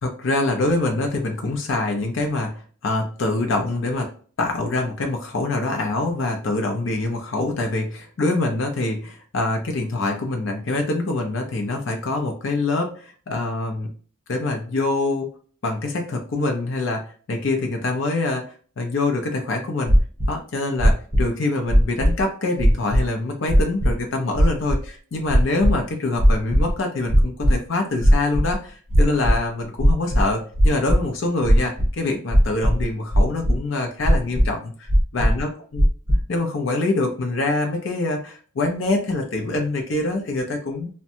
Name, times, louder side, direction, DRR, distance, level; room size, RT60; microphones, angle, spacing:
voice 1, 0.0-4.1 4.4-13.9 14.3-15.3 15.6-17.0 17.3-18.4 18.8-19.9 20.3-35.8 36.3-40.9, left 2 dB, 60° left, 3 dB, 0.5 m, -25 dB
sound 1, 19.9-20.3 20.8-21.2 21.7-22.2 22.6-23.0 23.5-23.9 24.4-24.8 25.3-25.7 26.2-26.7 27.1-27.5 28.0-28.5 28.9-29.3 29.8-31.0 31.4-31.9 32.3-32.8 33.1-33.6 34.0-34.5 34.9-35.4 35.7-36.2, equal, 30° right, 0.8 m, -16 dB
2.6 x 2.1 x 2.6 m, 0.42 s
head